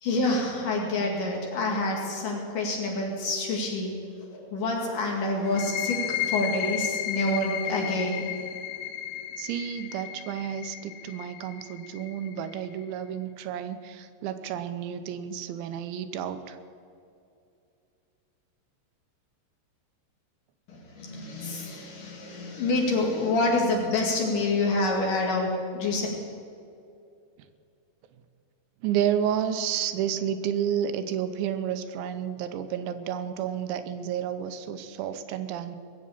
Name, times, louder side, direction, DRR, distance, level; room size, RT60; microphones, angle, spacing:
voice 1, 0.0-3.9 4.3-8.2 20.7-26.1, left 2 dB, 55° left, -1 dB, 3.2 m, -27 dB
sound 1, 5.4-12.9, left 11 dB, 80° left, 3.3 m, -34 dB
voice 2, 9.4-16.6 28.8-35.8, right 9 dB, 85° right, 9 dB, 3.1 m, -31 dB
20.0 x 7.4 x 8.6 m, 2.5 s
omnidirectional pair, 5.2 m